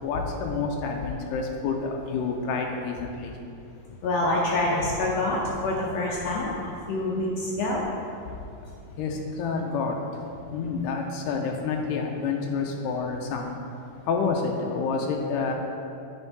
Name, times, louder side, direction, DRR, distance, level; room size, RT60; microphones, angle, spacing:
voice 1, 0.0-3.3 9.0-9.9 10.5-13.6 14.1-15.5, left 4 dB, 90° left, 1 dB, 2.2 m, -28 dB
voice 2, 4.0-7.8, left 2 dB, 75° left, -3 dB, 1.6 m, -26 dB
9.9 x 4.4 x 4.6 m, 2.6 s
omnidirectional pair, 3.7 m